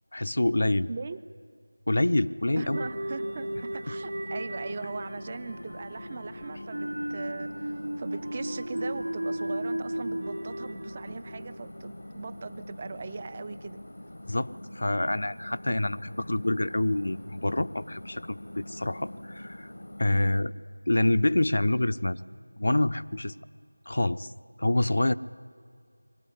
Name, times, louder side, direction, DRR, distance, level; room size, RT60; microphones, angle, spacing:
voice 1, 0.1-0.9 1.9-2.9 3.9-4.0 14.3-14.5 14.7-19.7 20.0-20.5 20.9-22.2 22.6-23.3 23.9-24.3 24.6-25.1, left 1 dB, 55° left, 12 dB, 0.5 m, -26 dB
voice 2, 0.9-1.2 2.6-13.8 20.1-20.4, right 4 dB, 20° right, 14 dB, 0.4 m, -39 dB
sound 1, 2.4-20.4, left 1 dB, 70° left, 1.0 m, -44 dB
sound 2, 2.7-11.9, right 1 dB, 45° right, 1.1 m, -35 dB
22.0 x 16.0 x 9.8 m, 2.3 s
figure-of-eight pair, 175°, 0 cm